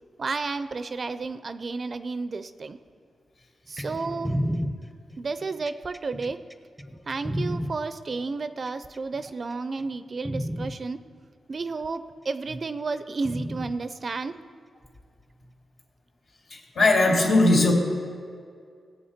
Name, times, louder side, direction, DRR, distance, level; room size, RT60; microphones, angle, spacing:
voice 1, 0.2-2.8 3.7-4.4 5.2-6.4 7.1-11.0 11.5-14.4, right 4 dB, 50° right, 12 dB, 0.5 m, -32 dB
sound 1, 3.8-7.7 8.7-9.3 9.8-9.9 10.2-10.7 11.8-11.9 13.2-13.7 14.8-14.9, equal, ahead, 0.7 m, -31 dB
voice 2, 16.5-17.7, left 2 dB, 70° left, -2 dB, 2.7 m, -20 dB
17.0 x 8.1 x 4.4 m, 2.2 s
cardioid pair, 75°, 0 cm